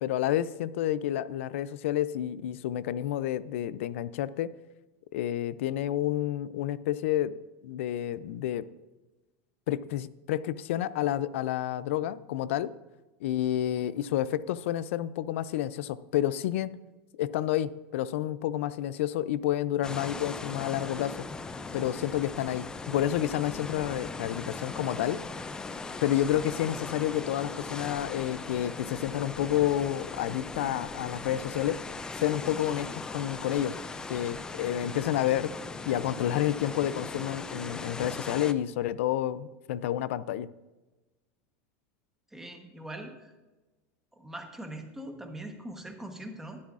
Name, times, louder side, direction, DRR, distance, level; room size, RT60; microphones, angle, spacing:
voice 1, 0.0-4.5 5.1-7.3 7.6-8.6 9.7-12.7 13.2-16.7 17.2-21.2 21.7-25.2 26.0-31.8 32.1-33.7 34.1-35.5 35.9-40.5, left 12 dB, 85° left, 16 dB, 0.4 m, -29 dB
sound 1, 19.8-38.5, left 3 dB, 10° left, 0.3 m, -39 dB
voice 2, 42.3-43.3 44.2-46.6, right 1 dB, 5° right, 4 dB, 1.0 m, -42 dB
12.5 x 10.0 x 2.4 m, 1.1 s
supercardioid pair, 145°, 7 cm